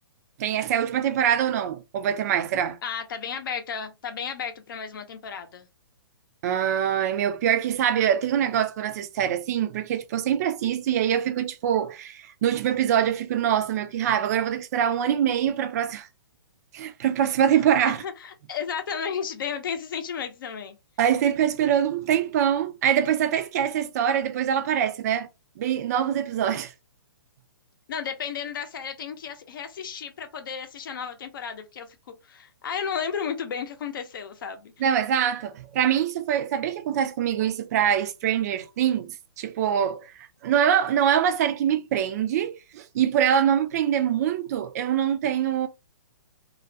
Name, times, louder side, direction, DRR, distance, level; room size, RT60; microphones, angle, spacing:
voice 1, 0.4-2.8 6.4-16.1 16.7-18.0 21.0-25.3 25.6-26.7 34.8-45.7, right 9 dB, 40° right, 0.4 m, -24 dB
voice 2, 2.8-5.7 17.8-20.7 27.9-32.0 32.2-34.8, left 7 dB, 60° left, 0.6 m, -33 dB
2.3 x 2.1 x 2.6 m
hypercardioid pair, 140°, 13 cm